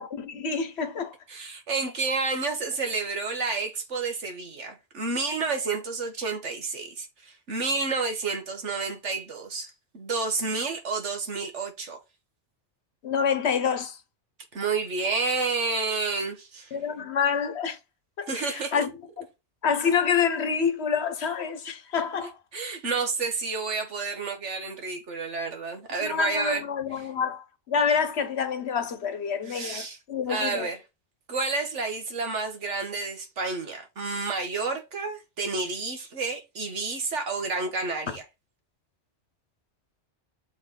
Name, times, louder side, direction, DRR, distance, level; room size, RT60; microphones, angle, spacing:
voice 1, 0.0-1.1 13.0-14.0 16.7-17.8 18.2-18.9 19.6-22.3 26.0-30.7 38.1-38.2, left 6 dB, 65° left, 1.2 m, -27 dB
voice 2, 1.3-12.0 14.5-16.8 18.3-18.9 22.5-26.6 27.0-27.1 29.5-30.0 30.3-30.8 31.3-38.3, right 4 dB, 85° right, 1.8 m, -30 dB
7.1 x 4.1 x 3.8 m
omnidirectional pair, 1.2 m